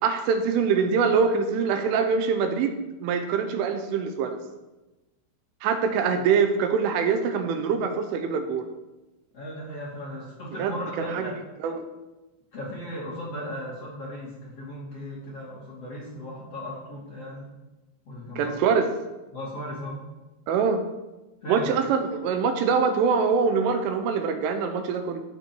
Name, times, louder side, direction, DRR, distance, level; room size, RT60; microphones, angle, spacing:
voice 1, 0.0-4.4 5.6-8.7 10.6-11.3 11.6-11.8 18.4-18.9 20.5-20.8 21.5-25.2, right 5 dB, 80° right, 7 dB, 3.4 m, -24 dB
voice 2, 9.3-11.3 12.5-17.5 18.1-18.6 19.3-20.0 21.4-21.7, equal, 40° left, -5 dB, 2.4 m, -36 dB
14.5 x 8.1 x 4.5 m, 1.1 s
omnidirectional pair, 5.7 m